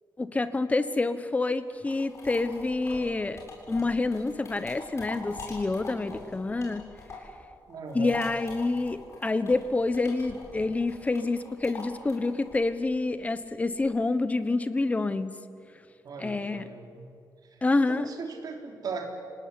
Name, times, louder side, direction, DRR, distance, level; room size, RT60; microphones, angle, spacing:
voice 1, 0.2-6.8 7.9-15.4 16.2-16.6 17.6-18.1, left 3 dB, 20° left, 12 dB, 1.2 m, -27 dB
sound 1, 1.6-7.4 7.7-14.0, left 3 dB, 40° left, 7.6 m, -44 dB
voice 2, 7.7-8.2 16.0-17.1 17.8-19.1, right 5 dB, 55° right, 3 dB, 3.9 m, -38 dB
28.0 x 19.0 x 9.8 m, 2.3 s
wide cardioid pair, 155°, 8 cm